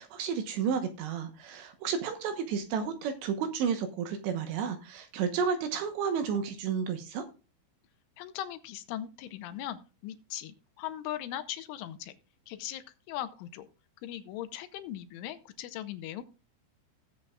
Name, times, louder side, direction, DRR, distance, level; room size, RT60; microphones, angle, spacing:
voice 1, 0.0-7.2, right 6 dB, 75° right, 7 dB, 3.0 m, -32 dB
voice 2, 8.2-12.2 12.5-13.7 14.0-16.2, left 12 dB, 80° left, 10 dB, 3.2 m, -39 dB
18.5 x 7.5 x 2.3 m, 0.32 s
omnidirectional pair, 5.8 m